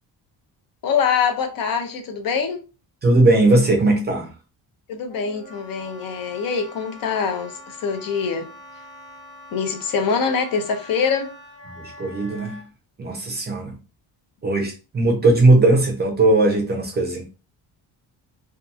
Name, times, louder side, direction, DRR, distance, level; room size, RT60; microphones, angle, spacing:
voice 1, 0.8-2.7 4.9-8.5 9.5-11.3, left 6 dB, 55° left, 0.5 m, -24 dB
voice 2, 3.0-4.3 11.8-12.6 13.0-13.8 14.4-17.2, right 2 dB, 25° right, 0.4 m, -18 dB
Wind instrument woodwind instrument, 5.1-12.7, left 1 dB, 25° left, 1.0 m, -43 dB
2.7 x 2.3 x 2.3 m
cardioid pair, 175°, 42 cm